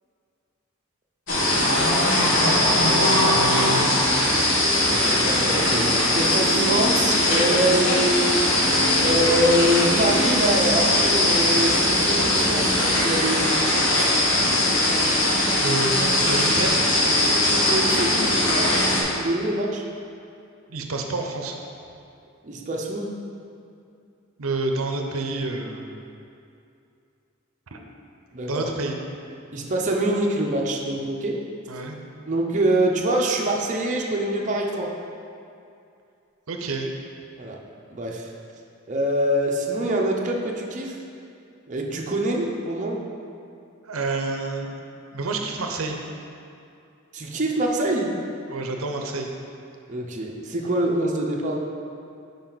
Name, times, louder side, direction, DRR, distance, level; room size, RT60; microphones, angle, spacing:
sound 1, 1.3-19.0, left 1 dB, 65° left, 1.7 m, -20 dB
voice 1, 2.8-3.9 15.6-16.9 20.7-21.6 24.4-26.0 27.7-27.8 28.5-29.0 31.7-32.0 36.5-36.9 43.8-44.7 45.1-46.0 48.5-49.3, right 2 dB, 85° right, 3 dB, 0.7 m, -28 dB
voice 2, 4.8-8.4 9.0-13.9 17.5-18.9 19.1-19.8 22.4-23.1 28.3-28.7 29.5-31.4 32.3-34.9 37.4-37.6 37.9-38.3 38.9-41.0 41.7-43.0 47.1-48.1 49.9-51.6, right 1 dB, 35° right, -1 dB, 0.7 m, -25 dB
8.7 x 5.3 x 4.0 m, 2.5 s
head